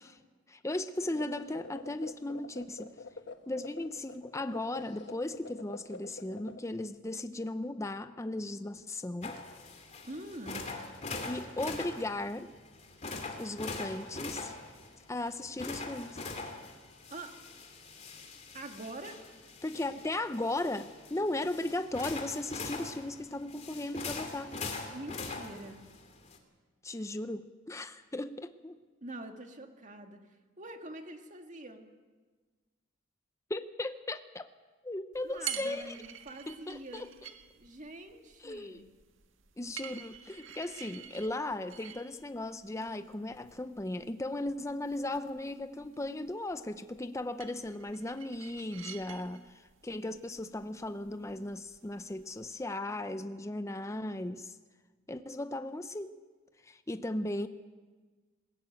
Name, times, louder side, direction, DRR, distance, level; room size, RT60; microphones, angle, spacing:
voice 1, 0.5-2.9 3.5-9.4 11.2-12.5 13.4-14.5 15.1-16.2 19.6-24.6 26.8-28.8 33.5-34.5 34.8-36.0 36.5-37.1 38.4-38.8 39.6-54.6 55.1-56.2 56.6-57.5, left 2 dB, 15° left, 10 dB, 0.6 m, -37 dB
sound 1, 1.0-6.6, left 3 dB, 60° left, 1.2 m, -47 dB
sound 2, 9.2-26.4, left 3 dB, 35° left, 2.6 m, -43 dB
voice 2, 10.0-10.7 17.1-17.4 18.5-19.2 24.9-25.8 29.0-31.9 35.2-37.1 37.6-38.8, right 2 dB, 40° right, 5 dB, 2.0 m, -45 dB
sound 3, 35.1-52.6, right 9 dB, 85° right, 1.8 m, -49 dB
20.5 x 16.0 x 9.0 m, 1.4 s
head